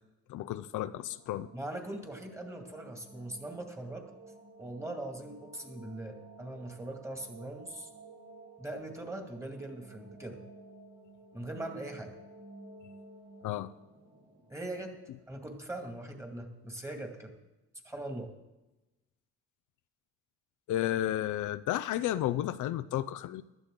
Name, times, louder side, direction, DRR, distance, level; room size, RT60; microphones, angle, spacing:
voice 1, 0.3-1.5 13.4-13.7 20.7-23.4, left 13 dB, 80° left, 11 dB, 0.6 m, -32 dB
sound 1, 0.9-15.8, right 2 dB, 50° right, 3.8 m, -54 dB
voice 2, 1.5-4.1 4.6-7.9 8.6-10.4 11.3-12.2 14.5-15.0 15.3-17.4 17.8-18.3, right 1 dB, 10° right, 4 dB, 2.2 m, -41 dB
15.5 x 12.0 x 3.8 m, 1.0 s
cardioid pair, 90°, 30 cm